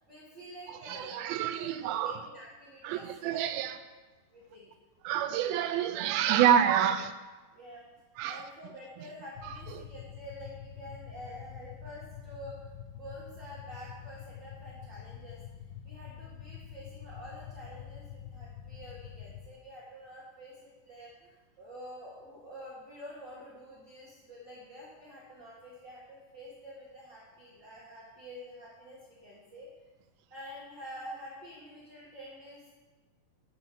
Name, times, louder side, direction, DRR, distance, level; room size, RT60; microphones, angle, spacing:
voice 1, 0.1-1.7 2.0-3.6 4.3-4.7 6.2-6.4 7.5-7.8 8.3-12.6 12.9-15.4 15.8-29.7 30.3-32.7, equal, 40° right, -6 dB, 1.9 m, -48 dB
voice 2, 0.7-2.1 2.8-3.8 5.0-7.1 8.2-8.4 9.7-9.8, right 10 dB, 85° right, 10 dB, 2.4 m, -28 dB
sound 1, 9.4-19.5, left 9 dB, 80° left, 2.3 m, -46 dB
11.0 x 5.5 x 7.0 m, 1.2 s
omnidirectional pair, 4.3 m